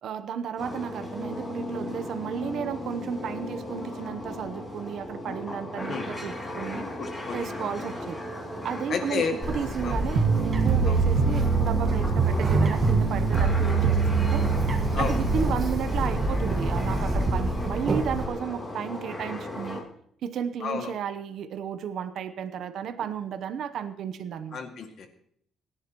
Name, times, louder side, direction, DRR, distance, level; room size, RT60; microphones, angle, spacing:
voice 1, 0.0-6.9 7.3-8.2 8.6-14.5 15.0-19.8 20.2-24.6, right 8 dB, 55° right, 10 dB, 0.9 m, -33 dB
sound 1, 0.6-19.8, left 1 dB, 10° left, 2.7 m, -36 dB
voice 2, 7.0-7.7 8.9-9.4 9.8-10.0 10.9-11.0 14.9-15.2 20.6-20.9 24.5-25.1, left 5 dB, 45° left, 5 dB, 2.1 m, -31 dB
Bird, 9.4-18.2, right 1 dB, 25° right, 1.7 m, -28 dB
sound 2, 10.2-15.5, right 5 dB, 85° right, 1.9 m, -24 dB
25.5 x 11.0 x 3.0 m, 0.67 s
cardioid pair, 180°, 0 cm